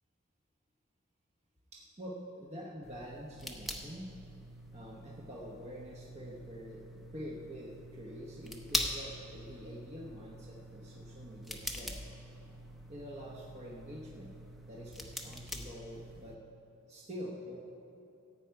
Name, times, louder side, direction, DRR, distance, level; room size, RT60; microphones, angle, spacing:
voice 1, 1.7-4.1 4.7-12.0 12.9-14.3 14.7-16.4 16.9-17.6, equal, 30° right, -3 dB, 1.0 m, -46 dB
sound 1, 2.8-16.4, left 1 dB, ahead, 0.7 m, -43 dB
15.0 x 8.8 x 4.7 m, 2.9 s
head